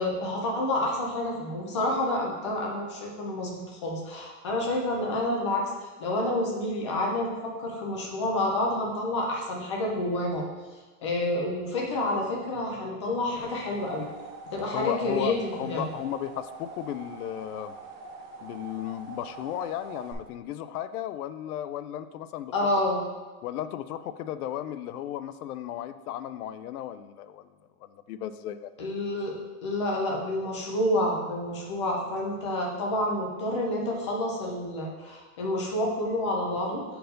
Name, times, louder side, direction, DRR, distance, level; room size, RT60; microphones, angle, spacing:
voice 1, 0.0-5.7 6.0-10.4 11.0-14.1 14.5-15.9 22.5-23.0 28.8-29.3 29.6-36.8, left 1 dB, 20° left, -1 dB, 0.4 m, -29 dB
sound 1, 13.4-20.1, right 3 dB, 30° right, 0.6 m, -44 dB
voice 2, 14.7-17.7 18.4-22.7 23.4-27.5 28.1-28.7, left 11 dB, 75° left, 13 dB, 0.5 m, -35 dB
6.6 x 4.6 x 3.9 m, 1.3 s
supercardioid pair, 180°, 45 cm